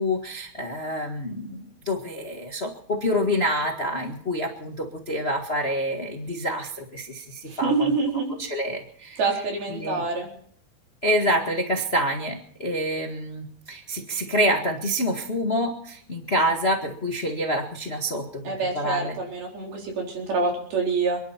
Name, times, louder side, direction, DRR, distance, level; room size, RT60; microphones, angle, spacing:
voice 1, 0.0-7.9 8.4-9.2 9.7-10.0 11.0-19.2, equal, 85° left, 2 dB, 0.5 m, -27 dB
voice 2, 7.5-8.3 9.2-10.3 18.4-21.2, right 4 dB, 70° right, 0 dB, 6.0 m, -26 dB
29.0 x 11.0 x 4.5 m, 0.62 s
omnidirectional pair, 4.5 m